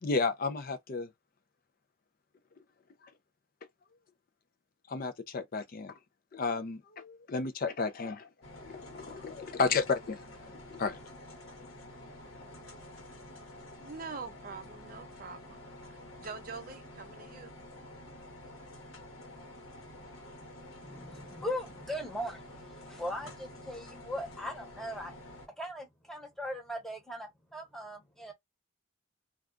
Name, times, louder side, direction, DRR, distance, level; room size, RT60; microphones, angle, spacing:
voice 1, 0.0-1.1 4.9-5.9 6.3-8.3 8.5-10.2 10.6-11.0, left 4 dB, 45° left, 0.4 m, -32 dB
sound 1, 8.4-25.5, left 1 dB, 80° left, 1.0 m, -49 dB
voice 2, 13.8-15.6 15.9-17.5, right 4 dB, 45° right, 0.5 m, -44 dB
voice 3, 20.8-25.1 25.6-28.3, equal, ahead, 0.9 m, -39 dB
2.3 x 2.2 x 3.6 m
head